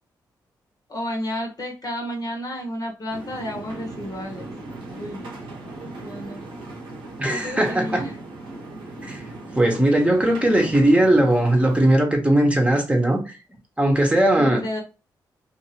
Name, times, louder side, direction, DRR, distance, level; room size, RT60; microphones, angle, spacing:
voice 1, 0.9-4.5 4.9-5.2 6.0-6.4 7.3-8.2 14.3-14.8, equal, 50° left, 1.1 m, -31 dB
sound 1, 3.1-11.9, right 2 dB, 85° right, 0.9 m, -38 dB
voice 2, 7.2-8.0 9.0-9.2 9.5-13.4 13.8-14.6, right 1 dB, 15° right, 1.0 m, -19 dB
2.6 x 2.6 x 2.9 m
supercardioid pair, 55°, 8 cm